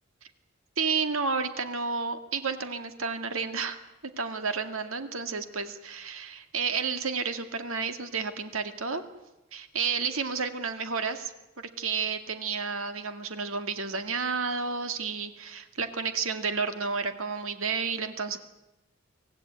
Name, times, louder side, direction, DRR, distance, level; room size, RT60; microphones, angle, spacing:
voice 1, 0.8-3.8 4.2-9.0 9.5-11.3 11.6-18.4, right 5 dB, 70° right, 8 dB, 2.1 m, -31 dB
24.5 x 16.5 x 9.6 m, 1.0 s
head